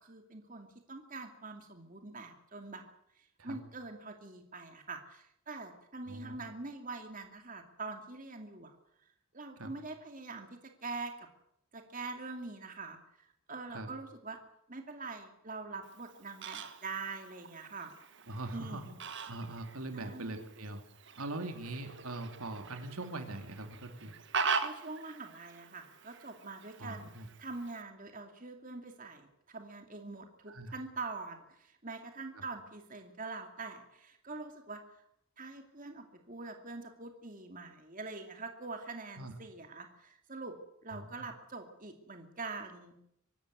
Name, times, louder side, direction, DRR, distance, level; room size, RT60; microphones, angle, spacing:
voice 1, 0.0-2.8 3.2-8.7 9.3-10.5 10.8-11.3 11.7-14.4 14.7-17.9 18.5-19.0 19.9-20.4 24.6-27.1 27.4-35.0 35.4-43.0, right 3 dB, 40° right, 5 dB, 2.5 m, -44 dB
Fowl, 15.8-27.8, right 5 dB, 55° right, 1.8 m, -42 dB
voice 2, 18.3-18.8 19.3-20.8 21.2-24.1 26.8-27.3 30.5-30.7 32.4-32.5 39.2-39.3 40.9-41.3, right 2 dB, 80° right, 6 dB, 3.0 m, -41 dB
24.5 x 13.0 x 9.4 m, 0.76 s
head